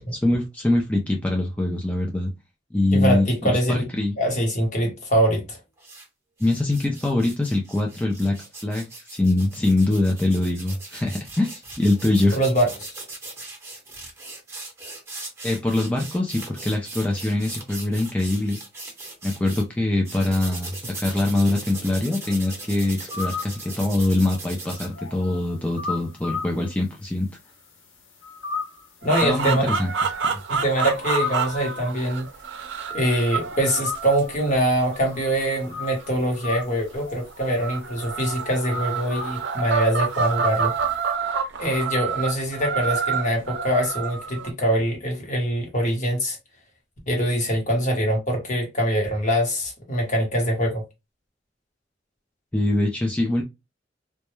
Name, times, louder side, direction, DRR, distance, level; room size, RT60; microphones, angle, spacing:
voice 1, 0.1-2.3 2.7-4.1 6.4-8.4 8.6-12.4 15.4-18.6 19.2-27.3 29.2-29.9 52.5-53.4, left 2 dB, 5° left, 0.3 m, -23 dB
voice 2, 2.9-3.8 4.2-5.6 12.3-12.9 29.0-29.7 30.5-32.2 32.9-40.7 41.6-46.4 47.1-50.8, right 1 dB, 40° left, 1.0 m, -23 dB
sound 1, 5.8-6.0 6.4-19.6 20.0-24.9, right 2 dB, 15° right, 0.8 m, -39 dB
sound 2, 21.6-27.1 27.4-41.1, left 4 dB, 90° left, 0.8 m, -36 dB
sound 3, 29.0-36.8 37.5-44.5, right 6 dB, 65° right, 0.5 m, -28 dB
2.2 x 2.1 x 3.0 m
head